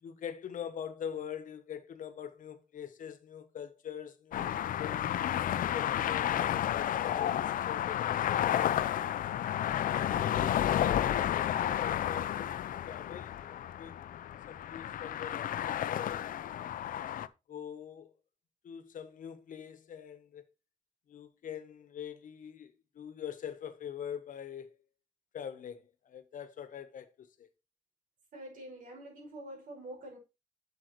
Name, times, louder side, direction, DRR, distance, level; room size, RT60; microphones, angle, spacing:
voice 1, 0.0-5.1 5.7-8.8 9.7-14.0 14.5-16.8 17.5-18.1 18.6-20.4 21.1-24.8 25.3-27.5, left 8 dB, 75° left, 1.1 m, -44 dB
sound 1, 4.3-17.3, left 11 dB, 90° left, 0.5 m, -31 dB
voice 2, 28.3-30.2, right 1 dB, 85° right, 5.3 m, -46 dB
7.9 x 7.7 x 3.1 m
wide cardioid pair, 165°, 14 cm